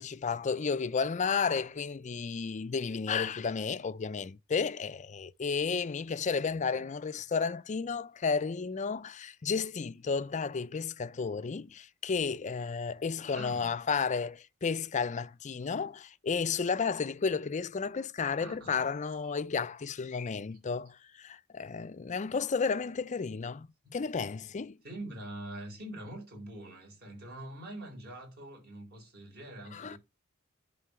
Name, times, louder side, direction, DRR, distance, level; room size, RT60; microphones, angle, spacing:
voice 1, 0.0-23.7 23.9-24.8 29.7-30.0, left 5 dB, 35° left, 0.4 m, -32 dB
voice 2, 13.3-13.7 18.4-19.0 19.2-19.3 23.8-24.0 24.8-30.0, right 1 dB, 45° right, 4.6 m, -44 dB
11.0 x 3.9 x 6.8 m
head